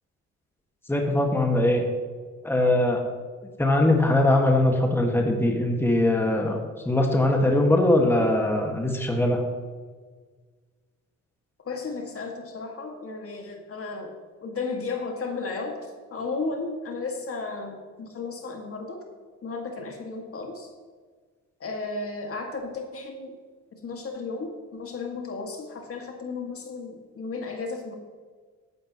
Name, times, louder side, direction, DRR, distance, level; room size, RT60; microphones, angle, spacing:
voice 1, 0.9-1.8 2.4-3.0 3.4-6.6 6.9-9.4, left 1 dB, 10° left, 1 dB, 1.8 m, -21 dB
voice 2, 11.7-14.1 14.4-15.8 16.1-19.0 19.4-20.7 21.6-23.4 23.8-28.0, left 3 dB, 50° left, 2 dB, 2.1 m, -34 dB
14.5 x 11.0 x 3.1 m, 1.5 s
cardioid pair, 90°, 30 cm